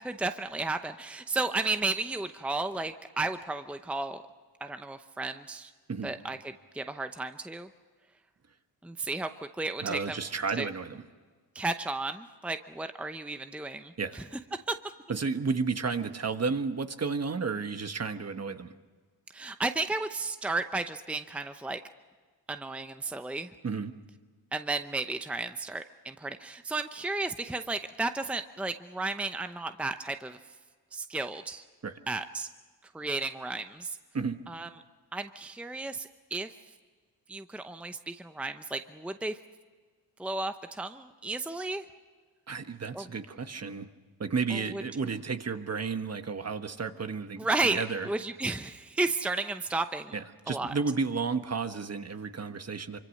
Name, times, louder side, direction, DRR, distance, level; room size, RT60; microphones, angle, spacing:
voice 1, 0.0-4.2 4.6-5.7 6.0-6.4 6.7-7.7 8.8-9.3 9.6-10.2 10.6-10.7 11.5-14.2 14.7-14.8 19.3-21.8 22.5-23.5 24.5-30.4 30.9-31.6 32.1-32.5 32.9-34.0 34.5-34.7 35.1-36.5 37.3-39.4 40.2-41.8 42.9-43.1 44.5-44.8 47.4-47.8 48.0-50.1 50.5-50.7, right 3 dB, 5° right, 8 dB, 0.8 m, -33 dB
voice 2, 9.8-11.0 14.0-14.2 15.1-18.7 23.6-23.9 31.8-32.0 34.1-34.4 42.5-43.9 44.2-48.1 50.1-53.0, right 4 dB, 40° right, 8 dB, 1.4 m, -32 dB
25.5 x 25.0 x 6.5 m, 1.5 s
cardioid pair, 90°, 40 cm